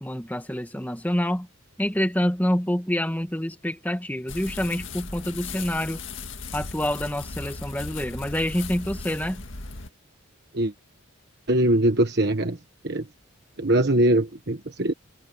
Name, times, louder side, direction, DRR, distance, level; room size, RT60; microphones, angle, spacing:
voice 1, 0.0-1.5 1.8-6.0 6.5-9.4, equal, 10° left, 1.9 m, -27 dB
sound 1, 4.3-9.9, left 3 dB, 65° left, 2.0 m, -37 dB
voice 2, 11.5-12.6 12.8-13.1 13.6-14.9, right 1 dB, 50° right, 1.3 m, -22 dB
head